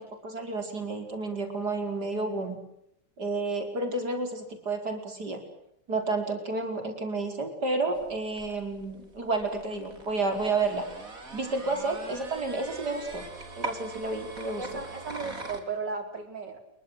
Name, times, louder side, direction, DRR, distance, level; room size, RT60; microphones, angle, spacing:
voice 1, 0.0-2.6 3.2-5.4 5.9-10.8 11.3-13.3 13.6-14.7, right 3 dB, 70° right, 5 dB, 5.5 m, -31 dB
sound 1, 7.9-15.6, right 2 dB, 50° right, 4.3 m, -42 dB
voice 2, 14.6-16.6, right 4 dB, 85° right, 7 dB, 5.0 m, -35 dB
29.5 x 23.5 x 7.9 m, 0.79 s
omnidirectional pair, 1.8 m